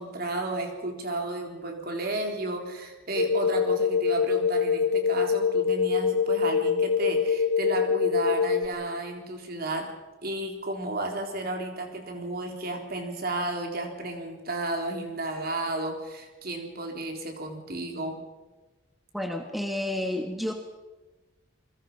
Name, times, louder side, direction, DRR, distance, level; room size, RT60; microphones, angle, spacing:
voice 1, 0.0-9.9 10.2-18.2, right 2 dB, 45° right, 3 dB, 3.8 m, -33 dB
sound 1, 3.1-8.7, left 6 dB, 50° left, 0.8 m, -24 dB
voice 2, 19.1-20.5, left 1 dB, ahead, 4 dB, 1.4 m, -30 dB
28.5 x 22.0 x 5.6 m, 1.2 s
head